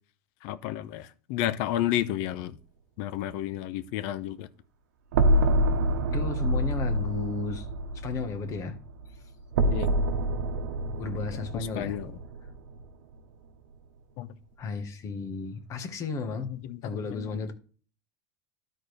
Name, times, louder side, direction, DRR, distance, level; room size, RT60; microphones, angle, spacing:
voice 1, 0.4-2.6 3.0-4.5 9.6-9.9 11.5-12.1 14.2-14.3 16.5-16.8 17.1-17.3, left 13 dB, 60° left, 0.7 m, -31 dB
sound 1, 5.1-13.1, right 1 dB, 90° right, 0.9 m, -27 dB
voice 2, 6.1-7.7 7.9-8.8 9.1-9.2 11.0-12.0 14.6-16.5 16.8-17.5, left 4 dB, 35° left, 1.3 m, -34 dB
12.5 x 4.4 x 3.3 m
supercardioid pair, 140°, 9 cm